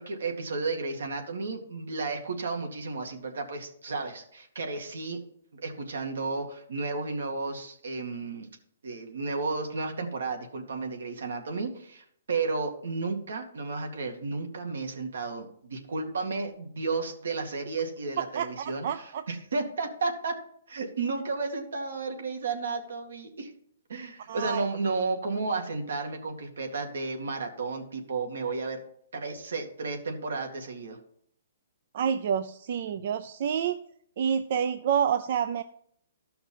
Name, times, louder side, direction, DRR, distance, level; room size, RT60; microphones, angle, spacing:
voice 1, 0.0-5.2 5.5-8.5 8.8-20.4 20.7-23.5 23.9-28.8 29.1-31.0, right 3 dB, 80° right, 4 dB, 2.3 m, -33 dB
voice 2, 18.3-19.2 24.3-24.7 31.9-33.8 34.2-35.6, right 8 dB, 45° right, 10 dB, 0.5 m, -28 dB
13.5 x 5.8 x 5.6 m, 0.66 s
hypercardioid pair, 165°, 0 cm